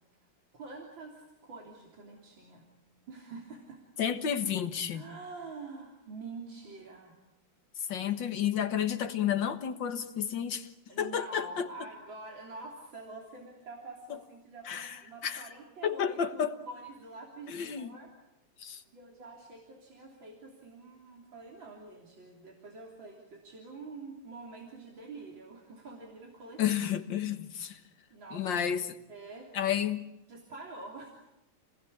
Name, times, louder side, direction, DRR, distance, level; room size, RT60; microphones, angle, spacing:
voice 1, 0.5-2.7 3.1-3.8 4.9-7.2 10.9-18.1 18.9-26.8 28.1-28.6 29.1-29.5 30.3-31.1, right 3 dB, 90° right, -1 dB, 4.1 m, -46 dB
voice 2, 4.0-5.0 7.9-10.7 11.0-11.7 14.7-15.4 15.8-16.5 17.5-17.9 18.6-18.8 26.6-27.8 28.3-29.0 29.5-30.1, left 9 dB, 75° left, 8 dB, 2.2 m, -31 dB
29.5 x 20.0 x 8.6 m, 0.95 s
omnidirectional pair, 2.0 m